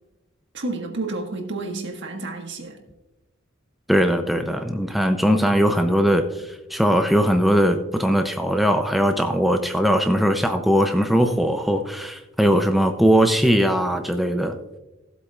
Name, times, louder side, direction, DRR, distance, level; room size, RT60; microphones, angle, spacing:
voice 1, 0.5-2.8, right 2 dB, 60° right, 3 dB, 1.6 m, -30 dB
voice 2, 3.9-14.6, equal, ahead, 5 dB, 0.5 m, -20 dB
16.0 x 8.0 x 2.4 m, 0.99 s
head